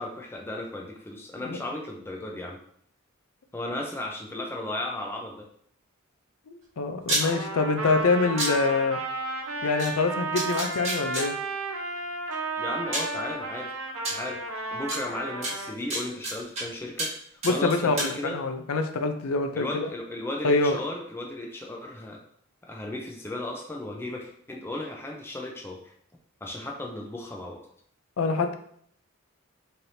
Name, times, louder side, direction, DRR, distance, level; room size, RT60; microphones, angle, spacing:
voice 1, 0.0-2.6 3.5-5.5 12.6-13.7 14.1-14.4 14.7-18.4 19.5-22.2 22.6-25.9 26.4-27.7, left 1 dB, 10° left, 0 dB, 0.5 m, -35 dB
voice 2, 6.5-9.0 9.6-11.3 17.4-19.9 20.4-20.8 28.2-28.5, left 3 dB, 85° left, 6 dB, 0.5 m, -25 dB
sound 1, 7.0-7.2 8.4-8.5 9.8-9.9 10.4-11.2 12.3-12.4 12.9-13.1 14.0-14.1 14.9-15.0 15.4-16.6 17.0-17.2 17.4-18.1, right 1 dB, 30° right, 1.4 m, -29 dB
Trumpet, 7.2-15.7, right 2 dB, 85° right, 0.8 m, -33 dB
4.3 x 3.3 x 2.7 m, 0.64 s
head